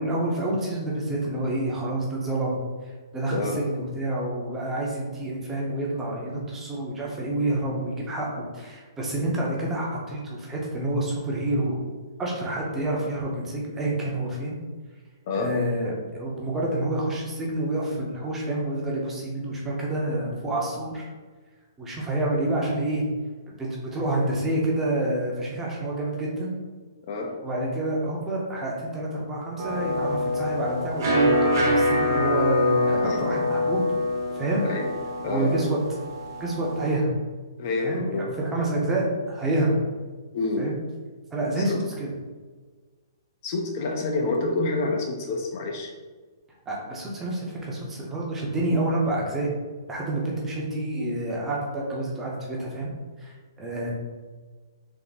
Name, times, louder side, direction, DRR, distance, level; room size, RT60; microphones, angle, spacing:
voice 1, 0.0-11.8 12.2-14.6 15.3-21.1 21.8-23.0 23.6-26.5 27.4-33.8 34.3-34.6 35.2-35.8 36.4-37.1 37.8-39.8 40.6-40.7 41.3-42.1 46.7-49.5 49.9-52.9 53.2-53.9, right 1 dB, 10° right, -3 dB, 0.6 m, -28 dB
voice 2, 3.3-3.7 15.3-15.5 27.1-27.4 33.0-33.7 34.6-34.9 35.2-35.6 37.6-38.3 40.3-40.7 41.7-41.8 43.4-45.9, left 3 dB, 40° left, 2 dB, 0.4 m, -28 dB
sound 1, 29.6-36.9, left 1 dB, 50° right, 1.0 m, -25 dB
3.5 x 2.0 x 3.9 m, 1.4 s
hypercardioid pair, 155°, 2 cm